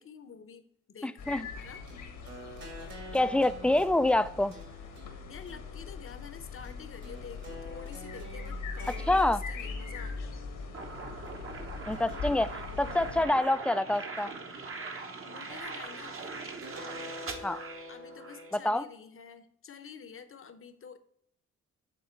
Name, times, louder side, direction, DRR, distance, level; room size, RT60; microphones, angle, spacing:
voice 1, 0.0-2.0 5.2-10.4 12.8-13.4 15.3-16.4 17.9-21.0, left 6 dB, 45° left, 0.8 m, -49 dB
voice 2, 1.0-1.5 3.1-4.6 9.1-9.4 11.9-12.5 12.8-14.3 17.4-17.6 18.6-18.8, left 1 dB, 5° left, 0.3 m, -26 dB
sound 1, 1.2-13.2, left 4 dB, 80° left, 1.5 m, -41 dB
sound 2, 1.9-11.3 11.9-13.5 13.9-15.1 16.6-18.5, equal, 65° right, 2.8 m, -48 dB
sound 3, 10.7-18.5, right 4 dB, 45° right, 1.1 m, -41 dB
9.3 x 3.6 x 4.4 m
cardioid pair, 75°, 31 cm